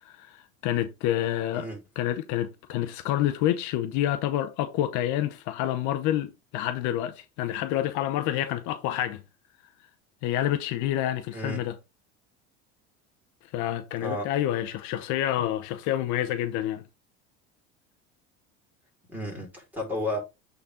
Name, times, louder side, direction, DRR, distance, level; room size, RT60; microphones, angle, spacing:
voice 1, 0.0-1.7 2.0-9.2 10.2-11.8 13.5-16.8, left 12 dB, 65° left, 0.9 m, -28 dB
voice 2, 11.3-11.7 14.0-14.3 19.1-20.2, left 1 dB, 5° right, 4.9 m, -33 dB
8.4 x 4.2 x 3.9 m
supercardioid pair, 100°, 32 cm